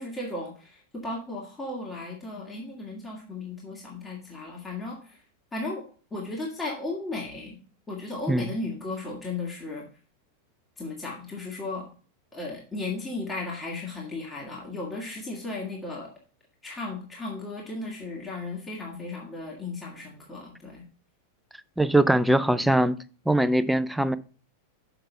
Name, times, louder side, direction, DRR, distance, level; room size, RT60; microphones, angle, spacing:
voice 1, 0.0-5.2 5.5-5.8 6.1-7.6 7.9-9.9 10.8-11.9 12.3-16.1 16.6-20.8, left 2 dB, 15° left, 2.1 m, -35 dB
voice 2, 21.8-23.0 23.3-24.2, right 1 dB, ahead, 0.5 m, -21 dB
6.6 x 6.1 x 5.6 m
figure-of-eight pair, 90°, 0 cm